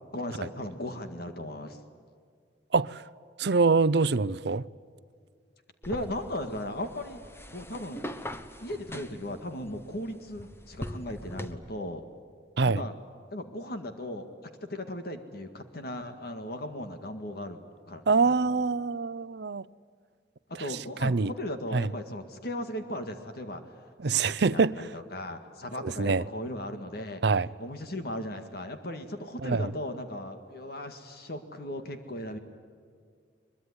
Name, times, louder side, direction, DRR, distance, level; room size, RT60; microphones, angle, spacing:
voice 1, 0.1-1.8 5.9-7.2 7.5-8.0 8.6-12.0 12.6-12.9 13.3-14.3 14.6-17.6 17.9-18.6 20.6-23.7 24.0-27.2 27.6-32.4, left 1 dB, 60° left, 1.9 m, -37 dB
voice 2, 2.7-3.0 3.4-4.7 12.6-12.8 18.1-19.7 21.0-21.3 21.7-21.9 24.0-24.9 25.8-26.2 27.2-27.5 29.4-29.7, right 4 dB, 65° right, 0.6 m, -25 dB
sound 1, 5.8-11.5, equal, 15° left, 1.2 m, -42 dB
23.0 x 22.5 x 9.8 m
head